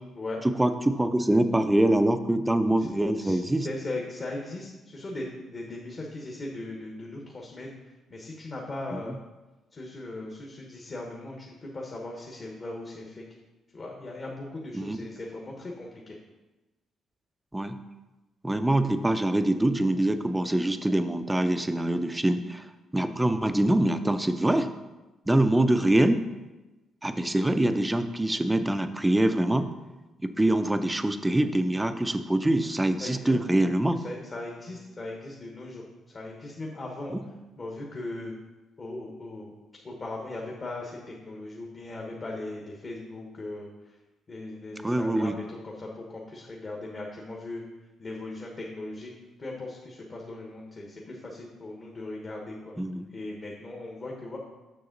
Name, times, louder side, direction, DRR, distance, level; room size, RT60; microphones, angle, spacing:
voice 1, 0.4-3.7 9.0-9.2 14.7-15.0 17.5-17.8 18.4-22.7 22.9-24.7 25.3-26.2 27.0-29.7 30.2-34.0 37.1-37.2 44.8-45.4 52.8-53.1, right 1 dB, 10° right, 9 dB, 0.5 m, -24 dB
voice 2, 3.2-7.7 8.1-9.2 9.7-13.2 13.7-16.2 22.9-23.1 33.0-33.4 34.0-37.2 37.6-38.3 38.8-39.5 39.8-43.7 44.3-47.6 48.0-49.1 49.4-52.8 53.1-54.4, left 2 dB, 35° left, -1 dB, 1.1 m, -38 dB
6.9 x 6.1 x 3.9 m, 1.1 s
cardioid pair, 90°, 0 cm